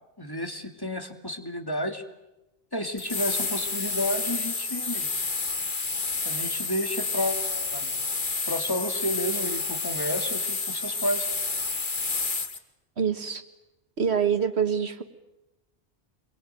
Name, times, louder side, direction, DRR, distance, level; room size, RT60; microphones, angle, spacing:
voice 1, 0.2-2.0 2.7-5.1 6.2-7.9 8.5-11.3, left 1 dB, 20° left, 5 dB, 2.5 m, -31 dB
sound 1, 3.0-12.6, left 4 dB, 50° left, 1.8 m, -29 dB
voice 2, 13.0-13.4 14.0-15.0, right 7 dB, 70° right, 9 dB, 1.8 m, -25 dB
27.5 x 23.0 x 9.1 m, 0.98 s
omnidirectional pair, 1.1 m